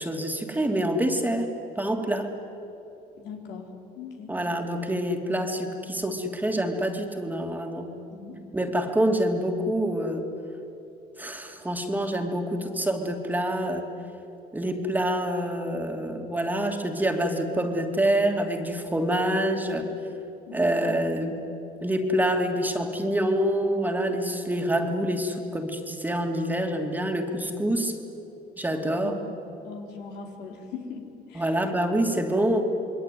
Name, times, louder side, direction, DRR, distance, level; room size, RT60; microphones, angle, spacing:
voice 1, 0.0-2.3 4.3-7.9 8.5-10.2 11.2-13.9 14.5-19.9 20.5-21.4 21.8-28.0 28.6-29.2 31.3-32.6, right 1 dB, 10° right, 3 dB, 2.7 m, -26 dB
voice 2, 3.2-3.7 3.9-4.3 8.1-8.4 20.5-20.7 29.0-29.2 29.6-31.5, left 5 dB, 85° left, 2 dB, 4.4 m, -40 dB
28.0 x 22.0 x 9.4 m, 2.9 s
cardioid pair, 110°, 17 cm